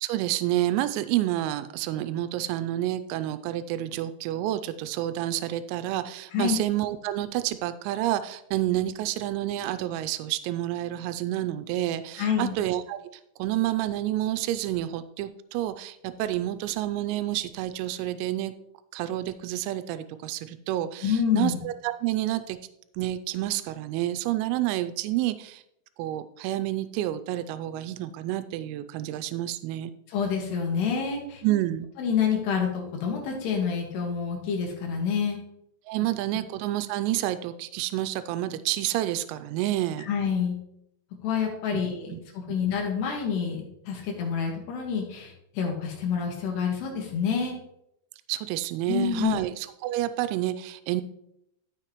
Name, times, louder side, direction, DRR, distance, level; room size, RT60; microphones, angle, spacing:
voice 1, 0.0-13.0 13.4-18.5 18.9-22.6 23.0-25.6 26.0-29.9 31.4-31.9 35.9-40.1 41.7-41.8 42.1-42.2 48.3-51.0, right 14 dB, 90° right, 12 dB, 3.2 m, -29 dB
voice 2, 12.2-12.5 21.0-21.6 30.1-31.4 32.0-35.4 40.0-40.5 41.2-47.6 48.9-49.4, left 7 dB, 65° left, 1 dB, 3.1 m, -27 dB
13.5 x 6.5 x 3.0 m, 0.78 s
omnidirectional pair, 5.9 m